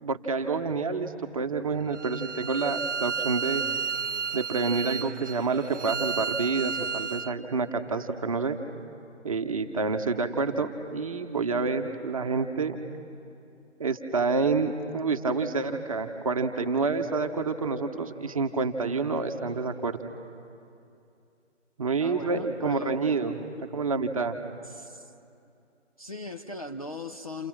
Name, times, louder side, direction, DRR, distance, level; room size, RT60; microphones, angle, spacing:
voice 1, 0.0-3.6 4.3-8.6 9.2-12.8 13.8-20.0 21.8-23.4 23.7-24.4, right 4 dB, 30° right, 6 dB, 1.0 m, -28 dB
Bowed string instrument, 1.9-7.3, right 5 dB, 75° right, 0.8 m, -32 dB
voice 2, 22.0-23.1 24.6-25.1 26.0-27.5, left 2 dB, 30° left, 5 dB, 0.5 m, -38 dB
29.0 x 28.0 x 6.1 m, 2.6 s
figure-of-eight pair, 150°, 37 cm